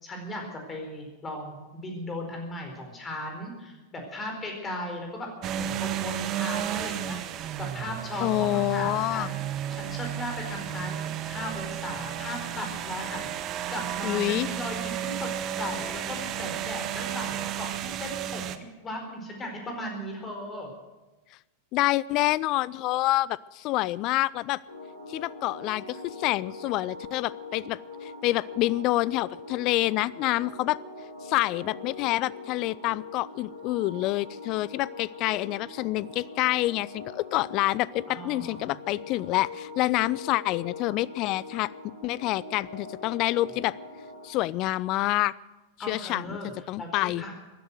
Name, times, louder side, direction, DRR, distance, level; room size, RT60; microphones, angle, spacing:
voice 1, 0.0-7.2 7.6-9.4 9.7-15.3 15.6-20.7 38.1-38.8 45.8-46.5 46.8-47.4, left 1 dB, 20° left, 3 dB, 4.3 m, -37 dB
sound 1, 5.4-18.6, right 10 dB, 35° right, 1.0 m, -33 dB
voice 2, 8.2-9.3 14.0-14.5 21.7-24.6 25.1-30.8 31.2-43.7 44.2-45.3 45.9-46.4 46.7-47.2, left 17 dB, 40° left, 22 dB, 0.4 m, -27 dB
sound 2, 24.7-44.3, left 3 dB, 70° left, 4.2 m, -42 dB
16.0 x 11.0 x 7.8 m, 1.1 s
figure-of-eight pair, 90°, 0 cm